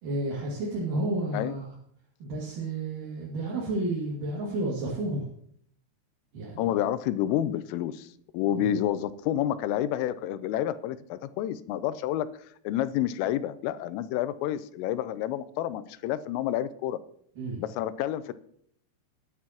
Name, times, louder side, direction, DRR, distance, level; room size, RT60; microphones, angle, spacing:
voice 1, 0.0-1.7 2.2-5.2 6.3-6.7 8.5-8.7 17.4-17.6, right 2 dB, 50° right, -5 dB, 3.3 m, -31 dB
voice 2, 6.6-8.1 8.3-12.3 12.6-17.0 17.6-18.3, left 12 dB, 90° left, 14 dB, 3.2 m, -29 dB
20.0 x 9.7 x 2.9 m, 0.63 s
omnidirectional pair, 5.8 m